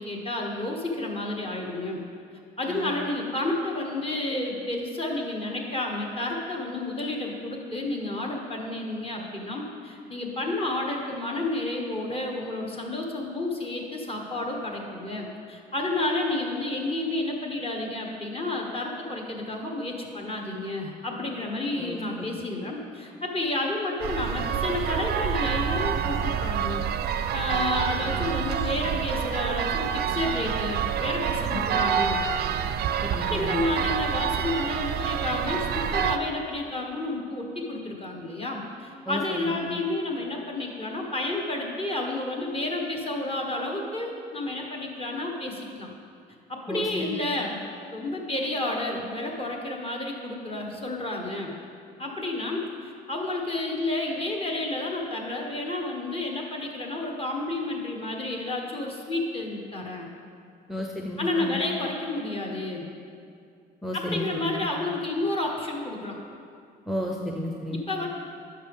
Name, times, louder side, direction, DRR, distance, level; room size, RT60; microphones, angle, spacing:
voice 1, 0.0-2.0 2.6-26.8 27.3-32.2 33.1-45.9 46.5-47.6 47.9-51.6 52.0-60.1 61.2-62.9 63.9-66.2 67.7-68.1, left 2 dB, 30° left, 0 dB, 1.4 m, -30 dB
voice 2, 21.8-22.5 31.5-31.9 33.0-33.6 39.1-39.6 46.7-47.2 60.7-61.6 63.8-64.6 66.9-67.8, left 1 dB, ahead, 0 dB, 0.6 m, -33 dB
sound 1, 24.0-36.2, right 8 dB, 60° right, 0.4 m, -27 dB
10.0 x 5.8 x 3.6 m, 2.4 s
supercardioid pair, 80°, 18 cm